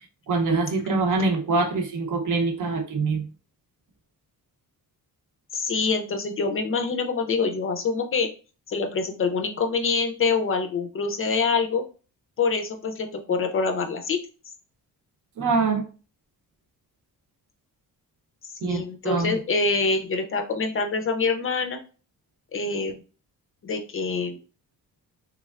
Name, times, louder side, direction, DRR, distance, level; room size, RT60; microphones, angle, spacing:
voice 1, 0.3-3.2 15.4-15.9 18.6-19.4, right 3 dB, 60° right, 5 dB, 0.7 m, -24 dB
voice 2, 5.5-8.3 8.7-11.8 12.4-14.2 18.6-21.8 22.5-23.0 23.6-24.4, left 4 dB, 40° left, 5 dB, 0.4 m, -25 dB
3.4 x 3.2 x 2.3 m, 0.35 s
wide cardioid pair, 170°, 36 cm